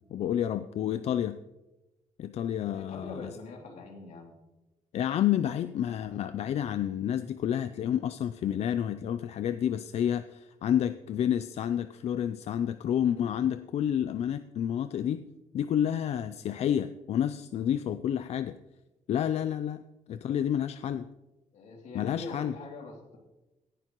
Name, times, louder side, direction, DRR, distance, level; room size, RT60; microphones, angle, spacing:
voice 1, 0.1-1.4 2.2-3.3 4.9-15.3 15.5-18.6 19.1-19.8 20.1-21.1 21.9-22.5, left 10 dB, 65° left, 11 dB, 0.4 m, -29 dB
voice 2, 2.7-4.4 21.5-23.2, left 3 dB, 85° left, 1 dB, 2.8 m, -43 dB
17.0 x 10.5 x 3.0 m, 1.0 s
wide cardioid pair, 160°, 12 cm